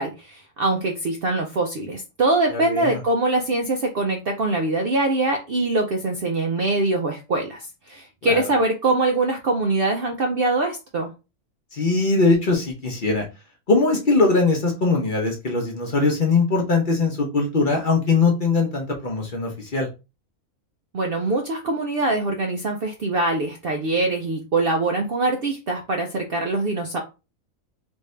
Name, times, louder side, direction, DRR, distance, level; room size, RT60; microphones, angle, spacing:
voice 1, 0.0-11.1 20.9-27.0, right 2 dB, 60° right, 2 dB, 0.6 m, -23 dB
voice 2, 2.5-3.0 8.2-8.4 11.7-13.3 13.7-19.9, left 3 dB, 45° left, 0 dB, 0.8 m, -21 dB
3.5 x 2.6 x 3.2 m, 0.29 s
omnidirectional pair, 1.5 m